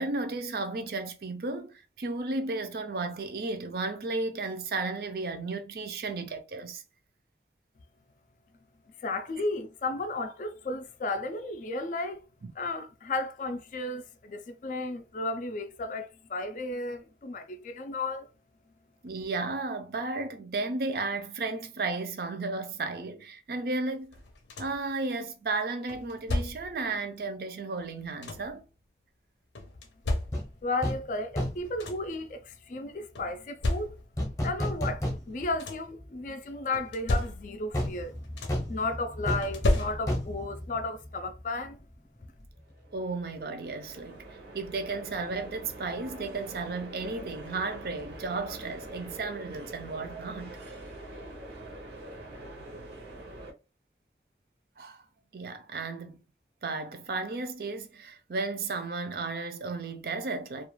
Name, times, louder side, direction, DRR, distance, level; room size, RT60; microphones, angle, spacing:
voice 1, 0.0-6.8 19.0-24.1 24.6-28.6 42.9-44.2 44.5-50.6 54.8-55.0 55.3-56.2 56.6-60.7, right 3 dB, 60° right, 0.4 m, -34 dB
voice 2, 9.0-12.2 12.6-18.3 30.6-34.0 34.4-38.1 38.7-41.8, left 2 dB, 45° left, 0.3 m, -34 dB
sound 1, 24.1-24.9 25.9-26.8 27.8-28.6 29.6-30.8 31.3-31.4 31.6-32.2 33.2-34.3 35.3-36.0 36.7-37.8 38.0-38.8 39.4-40.4 41.7-41.8 42.3-42.5, left 1 dB, 90° left, 0.6 m, -33 dB
sound 2, 30.3-30.5 30.8-31.1 31.4-31.8 34.2-35.6 36.0-36.1 37.7-41.4 41.7-41.8, left 1 dB, 20° left, 0.7 m, -32 dB
sound 3, 42.6-53.5, right 1 dB, 80° right, 0.7 m, -44 dB
2.3 x 2.2 x 3.0 m
head